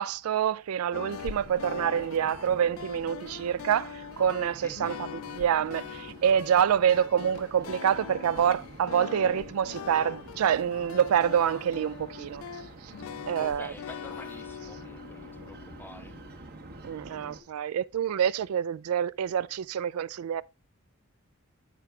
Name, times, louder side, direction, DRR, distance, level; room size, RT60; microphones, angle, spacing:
voice 1, 0.0-5.1 5.3-12.4 13.3-13.7 16.8-20.4, right 8 dB, 80° right, 0.3 m, -27 dB
sound 1, 0.9-16.4, left 7 dB, 70° left, 0.3 m, -42 dB
sound 2, 1.1-17.4, right 2 dB, 45° right, 1.1 m, -48 dB
voice 2, 4.6-5.0 13.4-16.2, left 1 dB, 10° left, 0.5 m, -47 dB
8.3 x 4.8 x 3.3 m
head